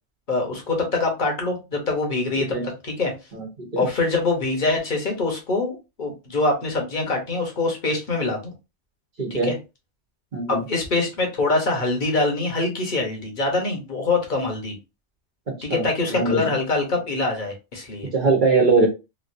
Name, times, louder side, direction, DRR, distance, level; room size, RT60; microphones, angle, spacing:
voice 1, 0.3-2.6 2.8-3.1 3.8-8.4 9.3-9.5 10.5-14.8 15.6-18.1, left 3 dB, 45° left, 1 dB, 1.1 m, -24 dB
voice 2, 2.4-2.7 3.3-3.9 9.2-9.5 10.3-10.6 15.7-16.4 18.1-18.9, right 3 dB, 45° right, 0 dB, 1.2 m, -21 dB
3.1 x 2.6 x 2.6 m, 0.27 s
omnidirectional pair, 1.2 m